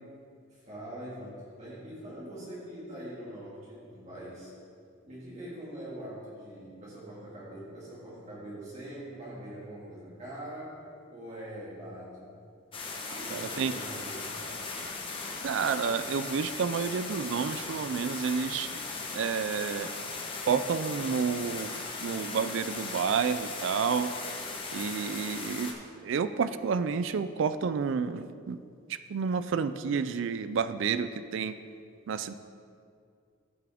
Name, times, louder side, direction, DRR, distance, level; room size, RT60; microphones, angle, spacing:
voice 1, 0.5-4.5 5.0-10.8 11.1-12.3 13.1-14.7, right 1 dB, 35° right, -8 dB, 2.1 m, -43 dB
sound 1, 12.7-25.7, left 3 dB, 25° left, 0.9 m, -38 dB
voice 2, 13.3-13.7 15.4-18.7 19.2-19.9 20.5-21.7 22.0-24.1 24.7-25.7 26.0-28.6 29.1-31.6 32.1-32.3, right 6 dB, 65° right, 12 dB, 0.4 m, -30 dB
14.5 x 5.9 x 3.5 m, 2.3 s
head